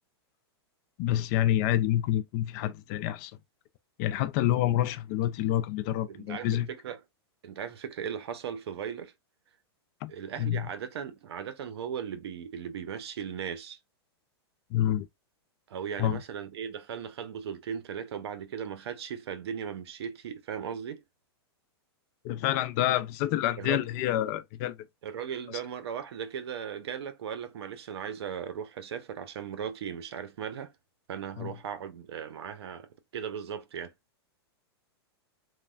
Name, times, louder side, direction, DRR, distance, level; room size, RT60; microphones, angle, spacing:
voice 1, 1.0-3.4 4.0-6.7 10.0-10.1 10.4-10.7 14.7-15.1 16.0-16.2 22.2-24.8 25.5-25.6 31.4-31.5, left 12 dB, 40° left, 0.4 m, -28 dB
voice 2, 6.1-7.0 7.4-9.1 10.1-13.8 15.7-21.0 23.6-23.9 25.0-30.7 31.1-32.9 33.1-33.9, right 8 dB, 75° right, 0.6 m, -37 dB
3.2 x 2.1 x 2.3 m
hypercardioid pair, 130°, 14 cm